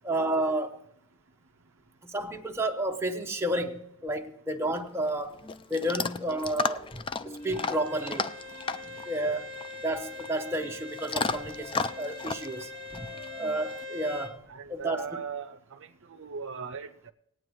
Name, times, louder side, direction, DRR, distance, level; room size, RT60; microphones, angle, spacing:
voice 1, 0.0-0.8 2.0-5.4 5.7-7.0 7.2-8.3 9.0-9.5 9.8-13.1 13.4-14.4 14.7-15.1, right 1 dB, 10° right, 0.9 m, -31 dB
Chewing mastication / Dog, 4.7-13.8, left 4 dB, 25° left, 0.3 m, -35 dB
Bowed string instrument, 7.4-14.3, left 2 dB, 45° left, 2.7 m, -42 dB
voice 2, 14.5-15.6 16.1-17.1, right 6 dB, 65° right, 0.6 m, -38 dB
20.5 x 9.0 x 3.1 m
head